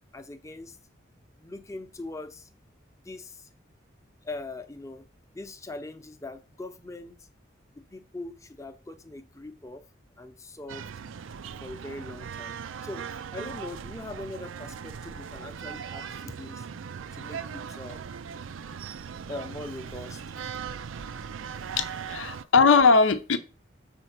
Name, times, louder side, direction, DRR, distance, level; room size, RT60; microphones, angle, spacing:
voice 1, 0.1-0.8 1.4-2.5 3.0-3.5 4.2-5.1 5.3-7.3 7.7-9.8 10.2-10.9 11.6-12.6 12.8-16.7 17.1-18.1 19.3-20.5 21.5-21.8, left 2 dB, 15° left, 8 dB, 0.7 m, -41 dB
sound 1, 10.7-22.4, right 7 dB, 85° right, 0.4 m, -39 dB
voice 2, 21.8-23.4, left 4 dB, 80° left, 10 dB, 0.7 m, -20 dB
6.8 x 4.5 x 6.6 m, 0.35 s
head